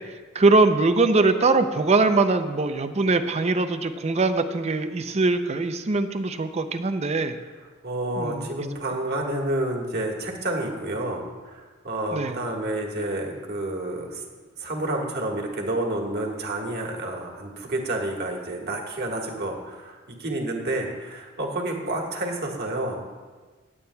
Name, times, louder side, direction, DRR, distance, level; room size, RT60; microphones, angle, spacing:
voice 1, 0.3-7.3 8.2-8.5 12.1-12.4, right 3 dB, 30° right, 8 dB, 0.5 m, -22 dB
voice 2, 7.8-14.2 14.6-23.0, right 1 dB, 50° right, 0 dB, 1.6 m, -29 dB
19.0 x 8.6 x 2.3 m, 1.4 s
head